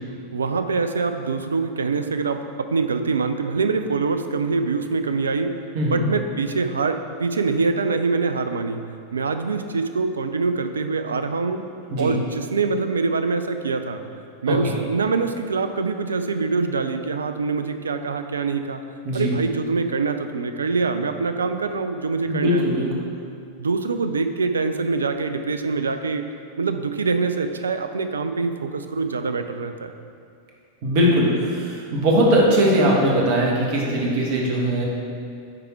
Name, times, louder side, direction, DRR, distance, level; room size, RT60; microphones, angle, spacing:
voice 1, 0.3-5.6 5.9-8.8 9.1-11.6 12.0-14.0 14.4-18.8 19.1-22.6 23.6-26.2 26.6-29.9, right 4 dB, 70° right, 8 dB, 0.4 m, -24 dB
voice 2, 22.2-22.9 30.8-34.9, equal, 50° right, -2 dB, 1.5 m, -20 dB
9.6 x 3.5 x 4.4 m, 2.4 s
figure-of-eight pair, 90°, 0 cm